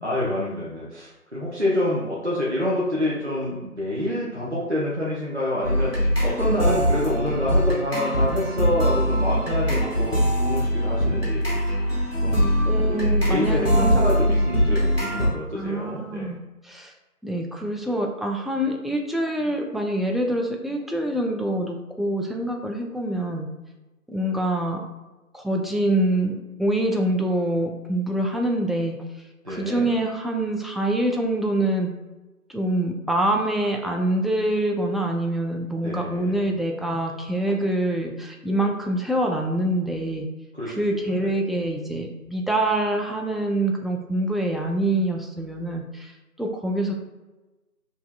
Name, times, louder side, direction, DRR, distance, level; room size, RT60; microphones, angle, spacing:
voice 1, 0.0-11.4 12.2-16.4 29.4-29.9 35.8-36.5 40.5-40.8, left 1 dB, 50° right, -6 dB, 0.6 m, -27 dB
sound 1, 5.6-15.3, equal, 40° left, 1.4 m, -22 dB
voice 2, 12.7-14.1 15.6-16.4 16.6-16.9 17.2-23.5 24.1-24.8 25.3-29.0 29.5-31.9 32.5-40.3 40.7-46.1 46.4-46.9, right 1 dB, ahead, 1 dB, 0.3 m, -25 dB
4.5 x 2.7 x 2.2 m, 1.1 s
figure-of-eight pair, 180°, 45 cm